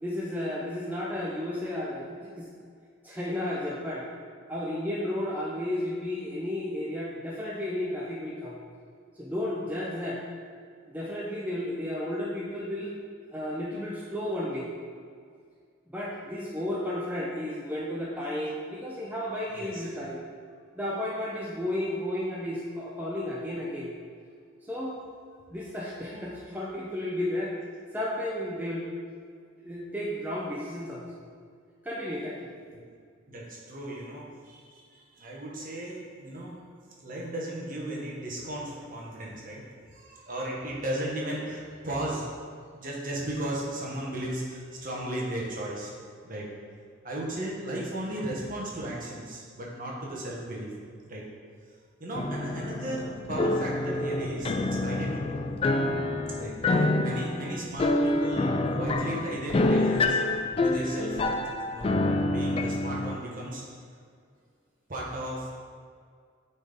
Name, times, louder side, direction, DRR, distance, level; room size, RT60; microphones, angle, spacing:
voice 1, 0.0-2.5 3.0-4.0 4.5-8.6 9.2-10.2 10.9-12.9 13.3-14.7 15.9-20.2 20.8-23.9 24.7-25.0 25.5-27.5 27.9-28.9 29.6-31.2 31.8-32.6, left 1 dB, 10° right, -5 dB, 0.7 m, -33 dB
voice 2, 19.5-19.8 33.3-36.6 37.0-39.6 39.9-42.4 42.7-45.9 46.2-46.5 47.0-50.7 51.1-51.2 52.0-55.4 56.3-60.2 60.6-61.4 61.6-63.6 64.9-65.6, right 1 dB, 45° right, -4 dB, 1.4 m, -35 dB
sound 1, 52.2-63.2, left 2 dB, 30° left, 0.3 m, -27 dB
8.7 x 4.3 x 3.6 m, 2.1 s
head